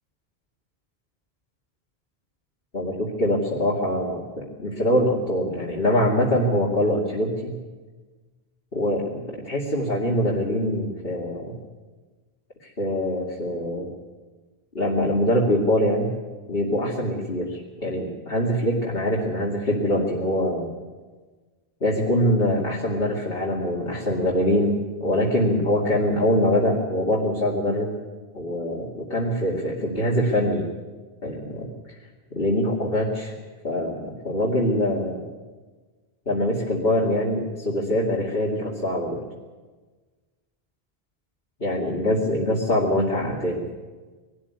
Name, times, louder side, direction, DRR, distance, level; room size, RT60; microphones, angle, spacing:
voice 1, 2.7-7.6 8.7-11.6 12.6-13.9 14.7-16.1 16.5-20.7 21.8-27.9 28.3-30.7 31.2-31.7 32.3-33.3 33.6-35.3 36.3-39.2 41.6-43.6, equal, 65° left, -3 dB, 2.8 m, -24 dB
21.5 x 13.0 x 9.6 m, 1.3 s
omnidirectional pair, 1.1 m